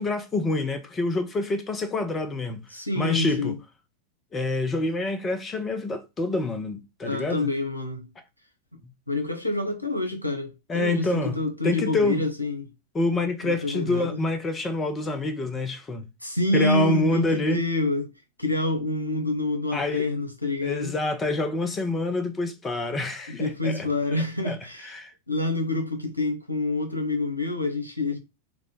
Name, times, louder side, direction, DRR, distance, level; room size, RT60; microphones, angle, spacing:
voice 1, 0.0-2.6 3.0-3.6 4.3-7.5 10.7-11.4 11.6-12.2 12.9-16.0 16.5-17.6 19.7-20.1 20.6-23.9 24.4-24.6 24.8-25.1, left 2 dB, 20° left, 0.7 m, -27 dB
voice 2, 2.7-3.6 7.0-8.1 9.1-12.7 13.4-14.2 16.2-18.1 18.4-21.0 23.3-24.9 25.3-28.2, left 2 dB, 85° left, 1.0 m, -27 dB
4.7 x 2.3 x 3.9 m
figure-of-eight pair, 90°, 0 cm